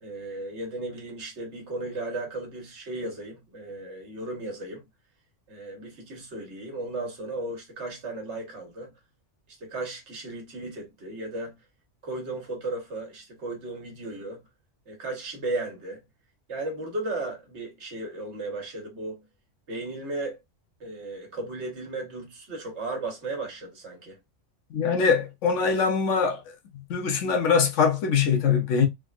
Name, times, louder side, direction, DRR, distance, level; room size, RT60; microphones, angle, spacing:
voice 1, 0.0-4.8 5.5-8.9 9.6-11.5 12.0-14.4 14.9-16.0 16.5-19.2 19.7-20.4 20.8-24.2, right 2 dB, 70° right, 1.3 m, -35 dB
voice 2, 24.7-26.4 26.9-28.9, left 6 dB, 80° left, 1.1 m, -22 dB
3.5 x 2.2 x 2.3 m
omnidirectional pair, 1.2 m